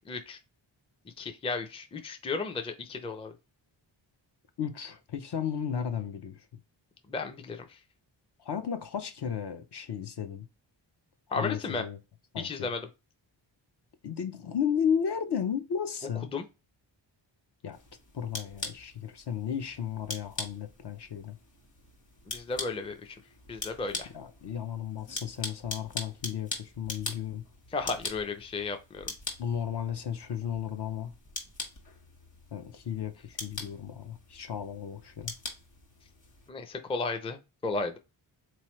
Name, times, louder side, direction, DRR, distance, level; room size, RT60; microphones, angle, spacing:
voice 1, 0.1-0.4 1.2-3.3 7.1-7.8 11.3-11.8 12.4-12.9 16.3-16.4 22.3-23.2 23.5-24.1 27.7-29.1 36.5-38.0, left 4 dB, 15° left, 0.4 m, -34 dB
voice 2, 4.6-6.4 8.4-10.4 11.3-12.0 12.3-12.7 14.0-16.3 17.6-17.8 18.1-21.4 24.1-27.4 29.4-31.1 32.5-35.3, left 8 dB, 55° left, 0.7 m, -34 dB
sound 1, 17.7-36.5, left 3 dB, 40° left, 1.5 m, -42 dB
3.8 x 3.1 x 3.1 m
wide cardioid pair, 105°, 47 cm